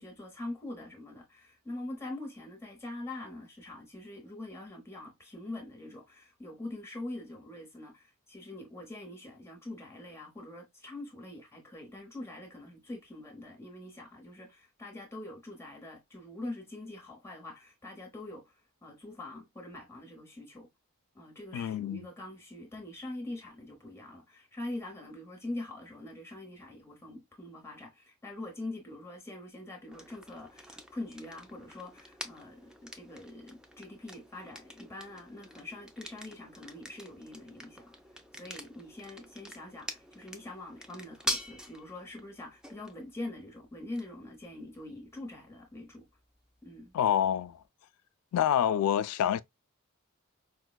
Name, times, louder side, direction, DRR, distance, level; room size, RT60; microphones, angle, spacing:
voice 1, 0.0-18.5 18.8-20.7 21.1-37.9 38.3-46.1 46.6-47.0, left 2 dB, 10° left, 0.9 m, -44 dB
voice 2, 21.5-22.0 46.9-47.6 48.3-49.4, left 9 dB, 90° left, 0.3 m, -27 dB
sound 1, 29.9-47.6, equal, 5° right, 0.3 m, -45 dB
4.7 x 2.2 x 2.2 m
head